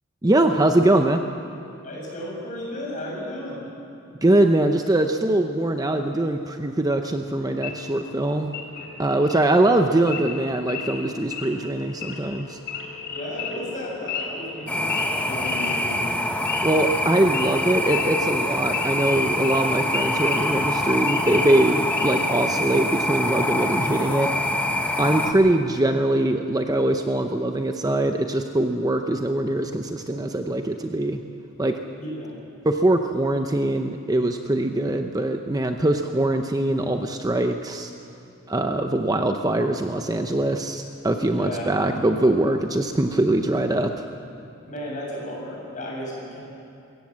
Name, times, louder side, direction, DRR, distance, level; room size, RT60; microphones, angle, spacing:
voice 1, 0.2-1.2 4.2-8.5 9.0-12.6 16.6-24.3 25.0-31.2 31.6-31.8 32.6-37.9 38.5-44.1, right 1 dB, 20° right, 5 dB, 0.7 m, -22 dB
voice 2, 1.8-3.6 13.1-16.0 32.0-32.3 41.3-41.7 44.7-46.4, left 1 dB, 40° left, -3 dB, 7.3 m, -34 dB
Wild animals / Idling, 7.6-22.3, left 5 dB, 55° left, 3.5 m, -36 dB
sound 1, 14.7-25.3, left 1 dB, 5° left, 1.3 m, -25 dB
23.0 x 17.5 x 7.5 m, 2.7 s
head